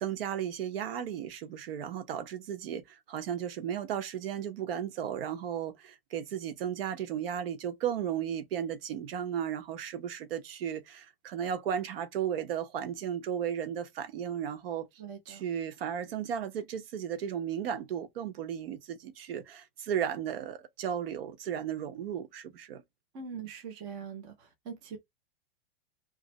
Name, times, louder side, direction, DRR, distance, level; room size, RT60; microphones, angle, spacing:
voice 1, 0.0-14.9 15.3-22.8, right 9 dB, 65° right, 0.9 m, -35 dB
voice 2, 15.0-15.4 23.1-25.0, right 6 dB, 15° right, 0.4 m, -42 dB
3.0 x 2.6 x 4.0 m
supercardioid pair, 175°, 31 cm